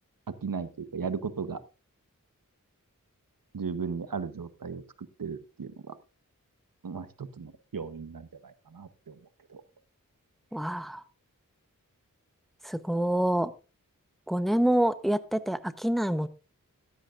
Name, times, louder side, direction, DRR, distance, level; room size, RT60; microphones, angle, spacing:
voice 1, 0.4-1.6 3.5-4.8 5.2-6.0 6.8-9.2 9.5-9.6, right 5 dB, 80° right, 13 dB, 1.0 m, -36 dB
voice 2, 10.5-11.0 12.6-13.5 14.3-16.3, right 1 dB, ahead, 13 dB, 0.8 m, -26 dB
13.5 x 13.0 x 2.5 m, 0.31 s
wide cardioid pair, 45°, 34 cm